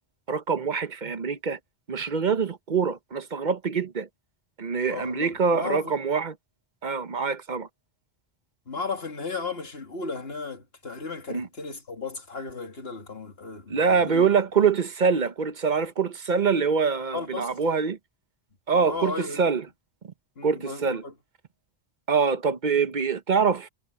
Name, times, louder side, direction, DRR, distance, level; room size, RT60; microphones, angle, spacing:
voice 1, 0.3-1.6 1.9-4.1 4.6-6.4 6.8-7.7 11.3-11.5 13.7-18.0 18.7-19.7 20.4-21.0 22.1-23.7, right 5 dB, 50° right, 1.0 m, -24 dB
voice 2, 4.9-5.9 8.7-14.3 17.1-17.5 18.7-19.5 20.4-21.1, left 4 dB, 75° left, 2.6 m, -35 dB
omnidirectional pair, 1.0 m